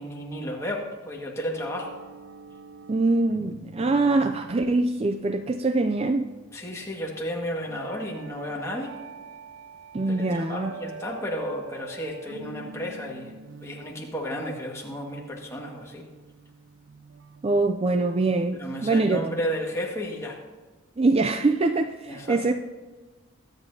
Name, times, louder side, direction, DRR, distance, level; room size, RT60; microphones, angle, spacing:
voice 1, 0.0-1.9 6.5-9.0 10.1-13.3 13.6-16.1 18.6-20.4 22.1-22.4, equal, 15° left, 1.8 m, -33 dB
sound 1, 1.6-17.6, right 4 dB, 70° right, 0.7 m, -46 dB
voice 2, 2.9-6.3 9.9-10.7 17.4-19.3 21.0-22.5, right 3 dB, 30° right, 0.4 m, -23 dB
23.0 x 8.8 x 2.8 m
head